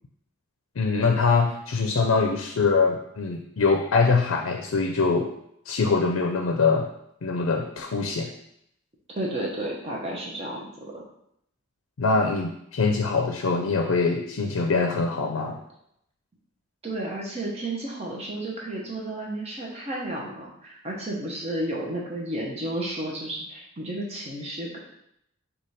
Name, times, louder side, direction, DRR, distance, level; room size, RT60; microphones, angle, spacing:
voice 1, 0.8-5.3 5.7-6.9 7.2-8.3 12.0-15.6, left 4 dB, 75° left, 3 dB, 0.5 m, -23 dB
voice 2, 9.1-11.0 16.8-24.8, right 1 dB, 30° right, -3 dB, 0.8 m, -32 dB
4.8 x 2.3 x 4.1 m, 0.75 s
head